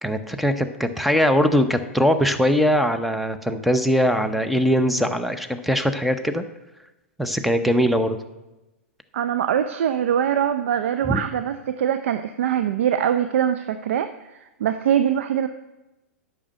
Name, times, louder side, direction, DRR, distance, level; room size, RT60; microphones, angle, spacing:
voice 1, 0.0-6.4 7.2-8.2 11.1-11.2, equal, ahead, 8 dB, 0.7 m, -21 dB
voice 2, 9.1-14.1 14.4-15.5, right 9 dB, 60° right, 10 dB, 0.5 m, -23 dB
8.6 x 6.2 x 7.7 m, 1.0 s
figure-of-eight pair, 105°, 8 cm